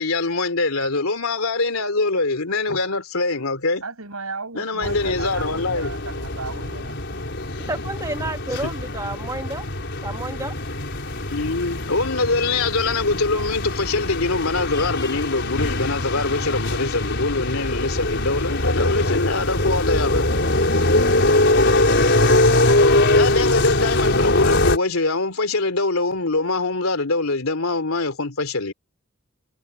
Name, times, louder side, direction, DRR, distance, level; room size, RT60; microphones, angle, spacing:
voice 1, 0.0-3.8 4.5-5.9 8.6-8.7 11.3-20.3 23.1-28.7, left 3 dB, 80° left, 3.1 m, -23 dB
voice 2, 3.8-7.0, right 4 dB, 90° right, 6.3 m, -35 dB
sound 1, 4.8-24.8, left 2 dB, 55° left, 5.0 m, -22 dB
voice 3, 7.7-9.6 10.0-10.6, right 2 dB, 15° right, 2.1 m, -30 dB
head